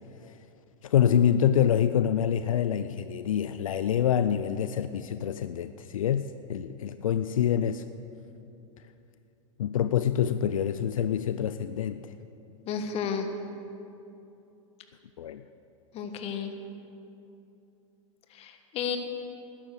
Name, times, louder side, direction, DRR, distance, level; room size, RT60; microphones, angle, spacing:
voice 1, 0.8-7.8 9.6-12.0 15.2-15.4, left 9 dB, 80° left, 12 dB, 0.5 m, -26 dB
voice 2, 12.7-13.3 15.9-16.5 18.3-19.0, left 7 dB, 35° left, 6 dB, 1.4 m, -32 dB
13.0 x 11.5 x 6.6 m, 2.8 s
hypercardioid pair, 105°, 17 cm